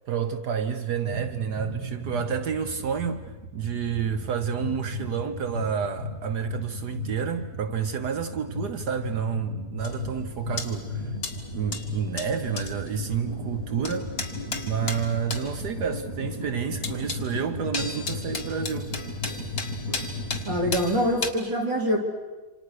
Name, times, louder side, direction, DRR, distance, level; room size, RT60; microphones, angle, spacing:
voice 1, 0.1-11.1 11.5-14.1 14.6-18.9, right 7 dB, 65° right, 1.5 m, -29 dB
sound 1, 0.9-20.7, left 1 dB, 50° right, 3.1 m, -36 dB
sound 2, 9.8-21.3, left 4 dB, 55° left, 2.5 m, -36 dB
voice 2, 20.5-22.0, equal, 90° right, 4.5 m, -24 dB
27.5 x 27.0 x 6.5 m
omnidirectional pair, 1.9 m